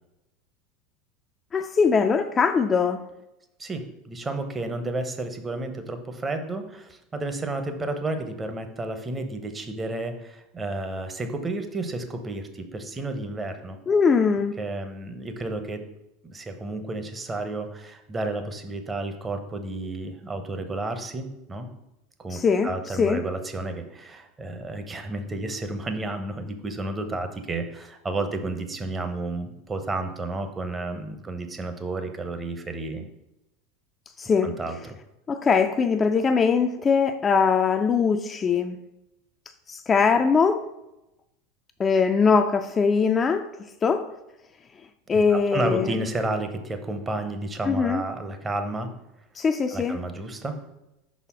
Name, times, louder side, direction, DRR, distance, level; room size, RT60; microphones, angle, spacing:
voice 1, 1.5-3.0 13.9-14.6 22.3-22.7 23.0-23.2 34.2-34.5 35.3-38.8 39.7-40.6 41.8-43.5 43.8-44.1 45.1-46.0 47.7-48.0 49.4-50.0, left 5 dB, 25° left, 7 dB, 0.4 m, -21 dB
voice 2, 3.6-13.8 14.6-15.8 16.2-21.7 22.2-33.0 34.4-35.0 45.1-48.9 49.7-50.6, right 2 dB, 20° right, 7 dB, 0.8 m, -31 dB
5.5 x 4.2 x 4.2 m, 0.91 s
figure-of-eight pair, 80°, 0 cm